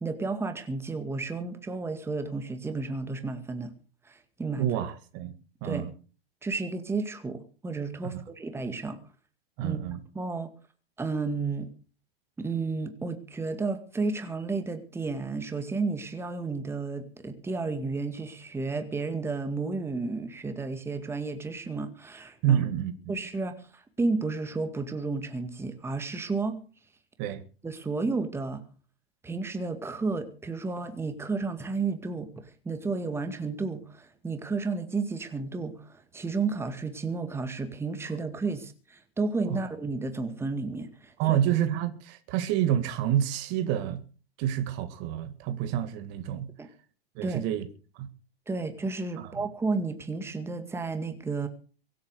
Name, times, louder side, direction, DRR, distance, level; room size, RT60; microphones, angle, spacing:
voice 1, 0.0-3.7 4.1-4.7 5.6-5.9 6.4-9.0 9.6-9.8 10.1-10.5 11.0-11.7 12.4-22.6 23.1-26.6 27.6-28.6 29.2-41.4 46.6-46.7 47.2-47.4 48.5-51.5, right 3 dB, 10° right, 2.0 m, -32 dB
voice 2, 4.6-5.3 5.6-5.9 8.1-8.2 9.6-10.0 22.4-22.9 27.2-27.4 39.5-39.6 41.2-44.0 44.4-46.5 47.2-47.7 48.0-48.1 49.2-49.4, right 10 dB, 35° right, 1.9 m, -28 dB
23.5 x 8.7 x 6.6 m
figure-of-eight pair, 100°, 30 cm